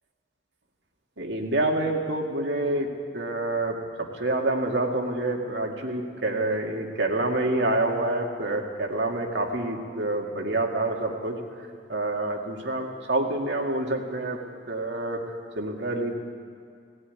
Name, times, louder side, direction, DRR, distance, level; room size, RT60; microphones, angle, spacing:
voice 1, 1.2-11.4 11.9-14.4 14.7-15.2 15.6-16.1, right 2 dB, 65° right, 1 dB, 2.0 m, -27 dB
18.0 x 16.0 x 9.5 m, 2.2 s
head